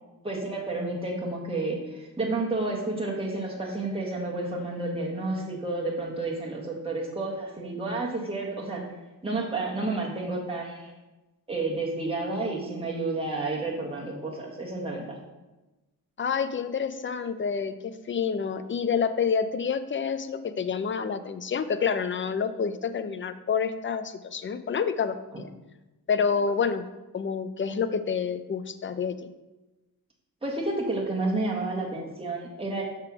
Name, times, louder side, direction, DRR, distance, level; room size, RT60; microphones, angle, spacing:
voice 1, 0.2-8.8 9.2-10.9 11.5-15.2 25.3-25.4 30.4-32.8, right 2 dB, 15° right, -3 dB, 1.6 m, -30 dB
voice 2, 16.2-25.5 26.1-26.8 27.1-29.3, left 6 dB, 30° left, 11 dB, 0.6 m, -28 dB
6.6 x 3.5 x 5.9 m, 1.1 s
cardioid pair, 60°, 37 cm